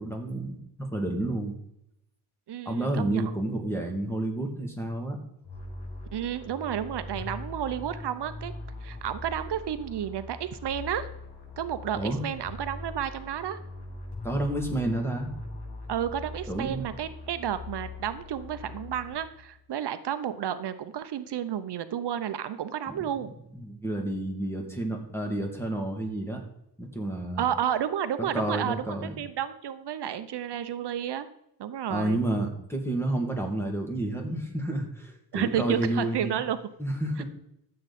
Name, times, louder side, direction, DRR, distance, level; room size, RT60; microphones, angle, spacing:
voice 1, 0.0-1.6 2.7-5.2 11.9-12.2 14.2-15.3 16.5-16.8 22.9-23.1 23.5-26.4 26.8-27.4 28.2-29.1 31.9-36.4 36.8-37.2, right 1 dB, 5° left, 2 dB, 2.5 m, -30 dB
voice 2, 2.5-3.3 6.1-8.5 8.8-11.1 11.6-13.6 15.9-23.3 27.4-31.3 31.6-32.2 35.3-36.6 37.2-37.3, right 9 dB, 75° right, 11 dB, 0.8 m, -31 dB
sound 1, 5.4-19.6, left 2 dB, 80° left, 4.4 m, -41 dB
13.5 x 7.7 x 4.2 m, 0.78 s
wide cardioid pair, 105°, 40 cm